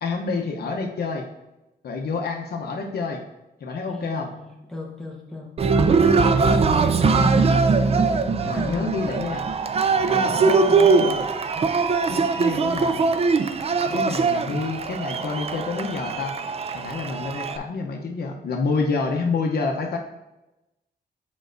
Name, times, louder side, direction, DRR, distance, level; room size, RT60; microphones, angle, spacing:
voice 1, 0.0-1.2 1.8-3.2 3.6-4.3 7.1-7.4 8.4-9.4 10.1-10.5 10.8-11.3 12.1-13.0 13.9-16.3 16.7-20.0, left 4 dB, 70° left, 2 dB, 0.8 m, -28 dB
voice 2, 3.8-5.5 6.5-7.4 8.5-8.9 10.1-11.0, left 1 dB, 5° left, -2 dB, 1.2 m, -34 dB
Cheering, 5.6-17.6, right 4 dB, 35° right, 0.4 m, -21 dB
7.2 x 5.2 x 2.6 m, 0.96 s
wide cardioid pair, 125°, 17 cm